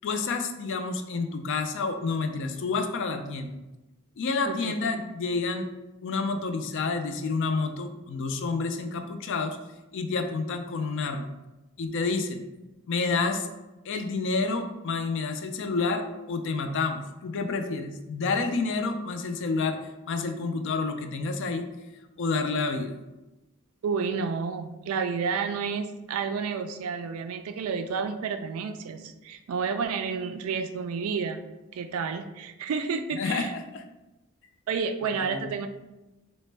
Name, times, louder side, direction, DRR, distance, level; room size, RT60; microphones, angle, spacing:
voice 1, 0.0-3.5 4.2-5.7 6.0-9.6 9.9-11.3 11.8-12.4 12.9-13.5 13.8-19.8 20.1-21.6 22.2-23.0 33.1-33.8 35.2-35.5, left 4 dB, 55° left, 7 dB, 0.4 m, -29 dB
voice 2, 23.8-31.4 31.7-33.5 34.7-35.7, right 5 dB, 70° right, 8 dB, 0.3 m, -30 dB
4.0 x 2.1 x 3.2 m, 1.0 s
head